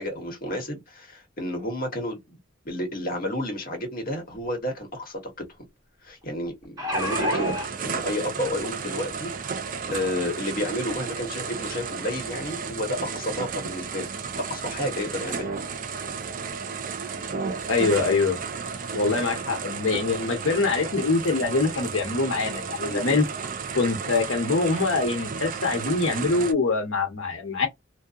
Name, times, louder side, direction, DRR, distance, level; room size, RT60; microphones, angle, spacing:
voice 1, 0.0-2.4 2.6-5.2 6.0-7.6 7.8-14.1 14.4-15.6 22.9-23.3, left 1 dB, 45° left, 1.1 m, -31 dB
sound 1, 4.3-4.4 4.8-4.9 6.5-7.7 8.6-8.7 9.1-9.2, left 1 dB, 20° right, 1.3 m, -29 dB
sound 2, 6.9-26.5, right 5 dB, 45° right, 0.4 m, -33 dB
voice 2, 17.7-18.4 18.9-23.3 23.7-27.7, left 3 dB, 85° left, 1.0 m, -24 dB
2.7 x 2.2 x 2.4 m
head